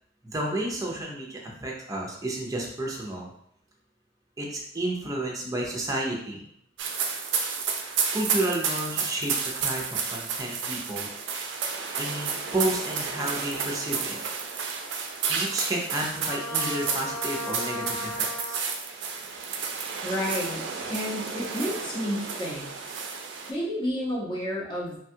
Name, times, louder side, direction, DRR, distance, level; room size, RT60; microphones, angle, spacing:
voice 1, 0.2-3.3 4.4-6.5 8.1-11.1 12.0-14.2 15.3-18.6, right 1 dB, 20° right, -2 dB, 0.5 m, -31 dB
sound 1, 6.8-23.5, right 5 dB, 75° right, 0.4 m, -31 dB
Trumpet, 16.2-18.7, left 2 dB, 70° left, 0.8 m, -36 dB
voice 2, 20.0-20.6 20.9-22.9 23.5-25.0, equal, 25° left, -4 dB, 0.8 m, -31 dB
3.2 x 2.3 x 2.7 m, 0.70 s
head